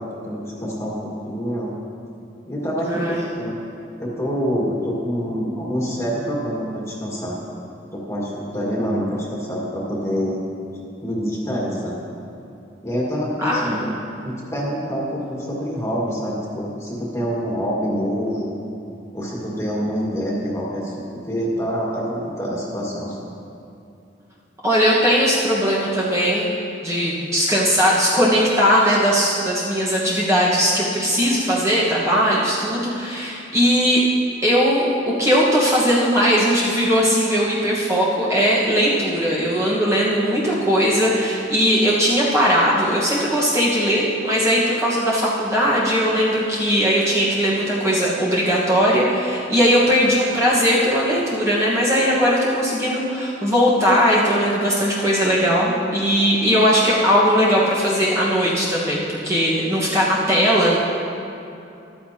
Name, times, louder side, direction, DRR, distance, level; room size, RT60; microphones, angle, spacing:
voice 1, 0.0-1.7 2.5-3.6 4.0-7.4 7.9-10.4 11.0-12.0 12.8-18.5 19.1-23.2, equal, 15° left, -5 dB, 1.9 m, -26 dB
voice 2, 2.9-3.2 13.4-13.8 24.6-26.5 26.8-34.1 34.4-34.9 35.2-60.8, equal, 15° right, -7 dB, 1.3 m, -19 dB
14.0 x 12.5 x 2.9 m, 2.7 s
head